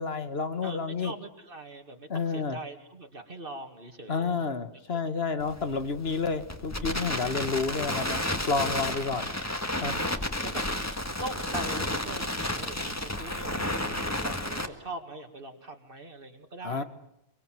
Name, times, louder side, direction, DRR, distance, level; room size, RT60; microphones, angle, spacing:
voice 1, 0.0-1.1 2.1-2.6 4.1-8.2 8.5-9.3 9.7-9.9 16.6-16.8, left 4 dB, 70° left, 10 dB, 1.8 m, -30 dB
voice 2, 0.6-4.5 4.9-5.0 5.7-5.8 7.2-7.3 8.5-8.9 9.8-10.6 11.2-16.8, right 2 dB, 55° right, 5 dB, 2.3 m, -42 dB
Crackle, 5.4-14.7, left 1 dB, 15° left, 1.8 m, -32 dB
24.0 x 24.0 x 7.6 m, 0.83 s
omnidirectional pair, 1.1 m